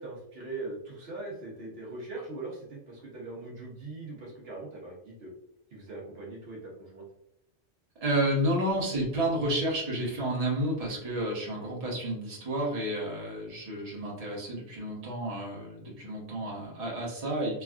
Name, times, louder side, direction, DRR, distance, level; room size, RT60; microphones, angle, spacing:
voice 1, 0.0-5.3 5.7-7.0, right 2 dB, 65° right, -4 dB, 1.0 m, -41 dB
voice 2, 8.0-17.6, right 1 dB, 35° right, -4 dB, 0.9 m, -31 dB
3.3 x 2.3 x 2.3 m, 0.80 s
omnidirectional pair, 1.1 m